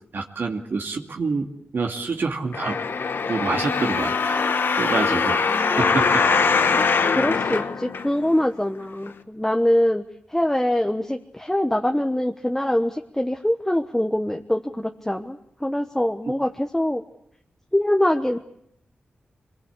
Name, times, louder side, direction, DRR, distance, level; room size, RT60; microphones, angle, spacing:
voice 1, 0.1-1.5 1.7-2.8 3.3-4.4 4.8-6.2 16.3-16.4, right 4 dB, 65° right, 3 dB, 2.4 m, -27 dB
sound 1, 2.5-8.5 9.1-9.2, left 5 dB, 70° left, 1.3 m, -22 dB
voice 2, 5.5-6.1 6.7-6.8 7.1-10.0 10.3-17.0 17.7-18.4, left 1 dB, 10° left, 4 dB, 1.2 m, -24 dB
24.5 x 21.5 x 8.3 m, 0.72 s
cardioid pair, 75°, 4 cm